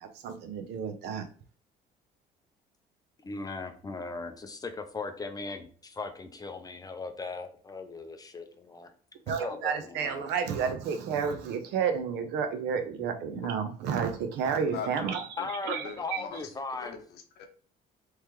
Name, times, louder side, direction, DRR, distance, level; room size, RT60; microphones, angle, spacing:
voice 1, 0.0-1.2 9.3-15.3 15.6-16.2, right 6 dB, 85° right, 8 dB, 0.7 m, -31 dB
voice 2, 3.2-8.9 9.4-10.2 15.4-17.0, left 3 dB, 20° left, 7 dB, 0.6 m, -38 dB
voice 3, 13.0-13.5 14.7-15.5 15.8-16.4 16.8-17.5, left 7 dB, 85° left, 4 dB, 0.7 m, -42 dB
3.5 x 3.2 x 3.0 m, 0.44 s
cardioid pair, 110°, 17 cm